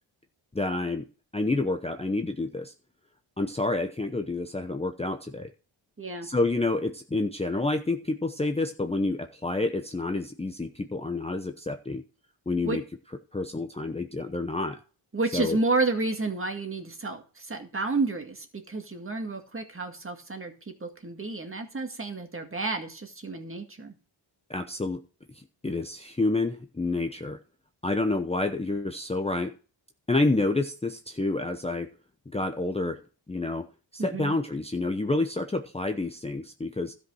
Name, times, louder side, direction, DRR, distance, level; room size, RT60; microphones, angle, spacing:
voice 1, 0.5-1.0 1.3-2.7 3.4-5.5 6.2-12.0 12.5-12.8 13.3-14.8 15.3-15.6 24.5-25.0 25.3-27.4 27.8-29.5 30.1-31.9 32.3-33.0 33.3-33.6 33.9-36.9, left 2 dB, 15° left, 5 dB, 0.8 m, -28 dB
voice 2, 6.0-6.3 12.6-12.8 15.1-23.9 34.0-34.4, right 3 dB, 25° right, 5 dB, 1.9 m, -31 dB
12.5 x 5.4 x 6.3 m, 0.37 s
cardioid pair, 90°, 47 cm